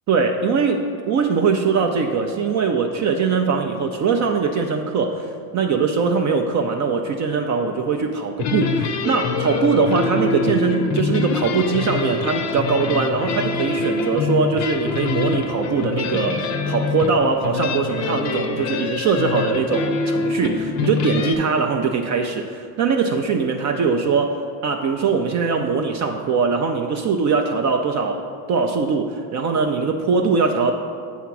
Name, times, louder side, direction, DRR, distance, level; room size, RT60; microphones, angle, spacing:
voice 1, 0.1-5.3 5.5-28.2 28.5-30.7, right 5 dB, 35° right, 4 dB, 0.5 m, -21 dB
sound 1, 8.4-21.3, left 4 dB, 35° left, 0.6 m, -25 dB
7.1 x 3.6 x 5.8 m, 2.2 s
hypercardioid pair, 90°, 49 cm